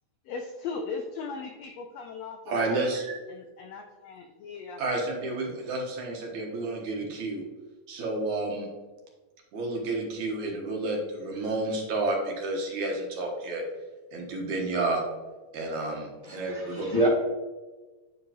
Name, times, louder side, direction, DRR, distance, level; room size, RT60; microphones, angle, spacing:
voice 1, 0.3-2.9 3.3-4.8, left 4 dB, 85° left, 4 dB, 1.5 m, -38 dB
voice 2, 2.5-3.2 4.8-7.4 7.9-8.7 9.5-13.6 14.1-15.0 15.5-16.9, right 2 dB, 70° right, 0 dB, 2.6 m, -30 dB
voice 3, 16.2-17.1, right 2 dB, 15° left, -6 dB, 1.3 m, -27 dB
9.9 x 5.1 x 2.9 m, 1.2 s
omnidirectional pair, 3.6 m